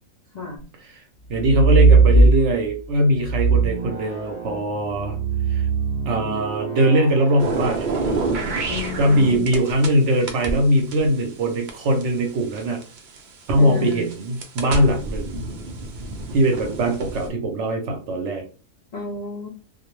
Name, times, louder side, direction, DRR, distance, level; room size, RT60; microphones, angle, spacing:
voice 1, 0.3-0.6 8.7-9.4 13.6-14.1 18.9-19.5, left 2 dB, 65° left, -1 dB, 0.4 m, -31 dB
sound 1, 1.3-2.7 3.2-8.7 10.2-10.6, right 3 dB, 40° right, 0.6 m, -20 dB
voice 2, 1.3-5.2 5.5-5.7 6.1-7.9 9.0-12.8 13.5-15.4 16.3-18.4, right 1 dB, 65° right, 4 dB, 0.8 m, -21 dB
sound 2, 7.4-9.9 10.3-13.2 13.8-17.3, right 3 dB, 90° right, 0.4 m, -28 dB
2.4 x 2.0 x 3.0 m, 0.36 s
omnidirectional pair, 1.4 m